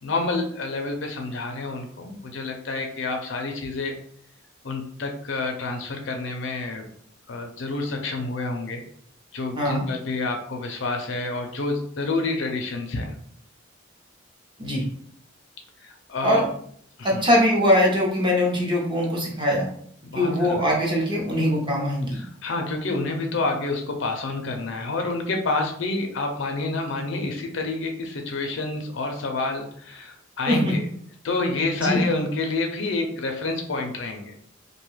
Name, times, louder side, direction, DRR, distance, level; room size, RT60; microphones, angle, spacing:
voice 1, 0.0-4.0 4.6-6.9 7.3-8.8 9.3-13.2 15.8-16.4 17.0-17.2 20.1-20.6 22.1-30.8 31.2-34.3, left 3 dB, 65° left, 4 dB, 0.5 m, -28 dB
voice 2, 17.0-19.7 20.1-22.2 30.5-30.6 31.8-32.0, equal, 25° right, -3 dB, 0.8 m, -22 dB
2.6 x 2.3 x 3.1 m, 0.62 s
head